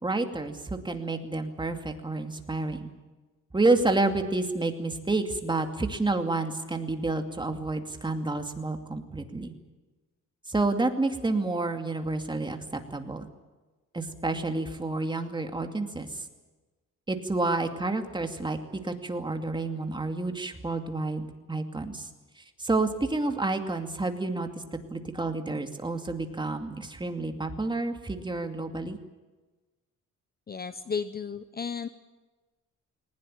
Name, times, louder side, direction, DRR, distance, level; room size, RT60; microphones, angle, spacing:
voice 1, 0.0-2.9 3.5-9.5 10.5-12.6 12.9-13.3 13.9-16.2 17.1-22.1 22.4-29.0, right 2 dB, 15° right, 5 dB, 2.5 m, -29 dB
voice 2, 30.5-31.9, left 6 dB, 30° left, 12 dB, 0.9 m, -33 dB
21.0 x 20.0 x 9.1 m, 1.2 s
cardioid pair, 130°, 31 cm